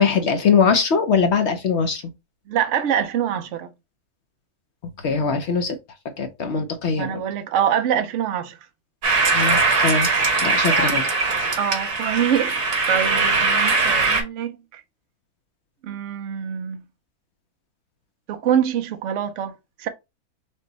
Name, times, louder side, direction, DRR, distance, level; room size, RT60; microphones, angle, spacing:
voice 1, 0.0-2.0 5.0-5.8 6.2-7.2 9.3-10.1 10.4-11.0, left 5 dB, 60° left, 0.8 m, -21 dB
voice 2, 2.5-3.7 6.9-8.6 11.6-12.6 12.9-14.8 15.8-16.8 18.3-19.5 19.8-19.9, right 9 dB, 60° right, 0.9 m, -24 dB
sound 1, 9.0-14.2, right 3 dB, 90° right, 1.8 m, -20 dB
5.3 x 2.2 x 3.9 m
omnidirectional pair, 1.6 m